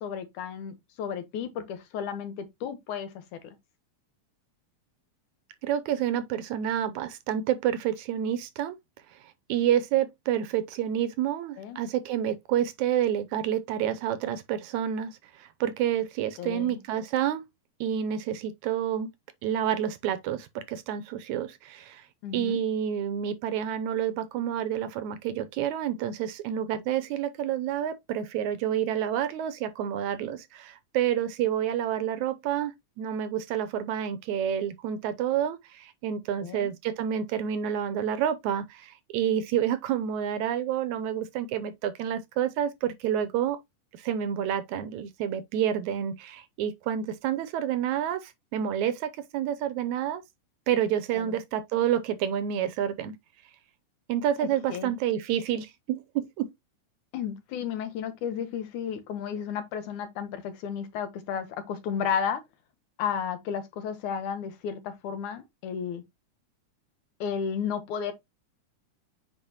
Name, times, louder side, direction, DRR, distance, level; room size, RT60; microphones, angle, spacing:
voice 1, 0.0-3.1 3.4-3.6 11.6-11.8 16.4-16.8 22.2-22.6 36.4-36.7 51.2-51.3 54.4-54.9 57.1-62.4 63.0-66.0 67.2-68.1, left 7 dB, 75° left, 2.5 m, -33 dB
voice 2, 5.6-8.8 9.5-17.4 17.8-19.1 19.4-22.1 22.3-32.7 33.0-43.6 43.9-50.2 50.7-53.2 54.1-56.5, right 10 dB, 80° right, 1.9 m, -29 dB
8.7 x 4.4 x 2.9 m
omnidirectional pair, 3.6 m